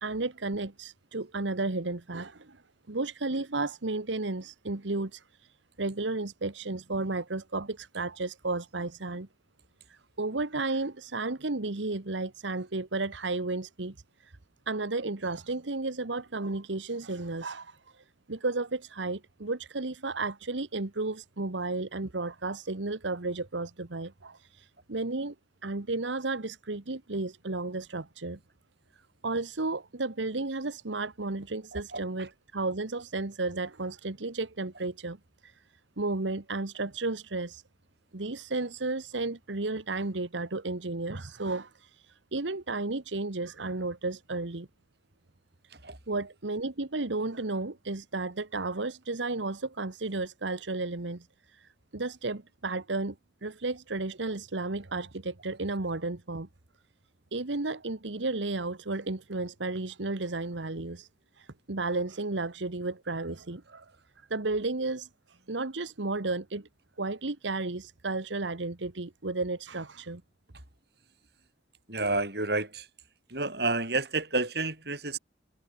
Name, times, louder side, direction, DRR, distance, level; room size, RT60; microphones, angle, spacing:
voice 1, 0.0-2.6 2.9-5.5 5.8-9.3 9.9-13.9 14.2-14.3 14.7-25.3 25.6-28.4 28.9-35.2 35.4-35.6 36.0-37.6 38.1-44.7 46.1-53.1 53.4-56.5 57.3-61.1 61.4-66.7 67.0-70.2, right 3 dB, 85° right, 1.4 m, -33 dB
voice 2, 31.7-32.3 45.7-46.0 71.9-72.9 73.3-75.2, right 2 dB, 60° right, 6.6 m, -30 dB
head